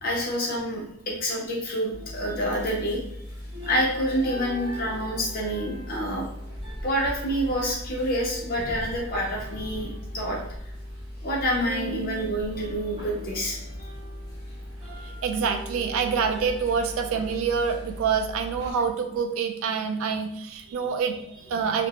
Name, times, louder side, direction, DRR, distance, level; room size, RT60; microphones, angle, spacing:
voice 1, 0.0-3.0 3.7-6.3 6.8-10.4 11.2-13.6, equal, 40° left, -2 dB, 0.7 m, -27 dB
sound 1, 1.9-18.7, equal, 25° right, 0.9 m, -38 dB
voice 2, 15.0-21.9, right 6 dB, 75° right, 7 dB, 0.3 m, -26 dB
2.5 x 2.0 x 2.8 m, 0.77 s
head